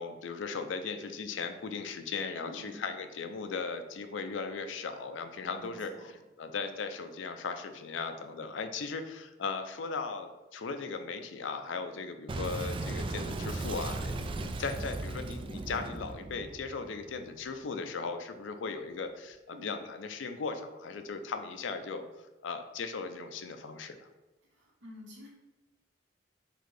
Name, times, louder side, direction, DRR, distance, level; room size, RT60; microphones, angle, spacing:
voice 1, 0.0-5.9 6.4-22.0 22.4-24.0, left 4 dB, 85° left, 8 dB, 0.5 m, -37 dB
voice 2, 2.4-2.8 5.5-6.2 19.5-19.6 24.4-25.3, left 2 dB, 75° right, -3 dB, 1.5 m, -50 dB
Boom, 12.3-17.5, right 2 dB, 30° right, 0.3 m, -37 dB
4.0 x 2.7 x 4.8 m, 1.1 s
head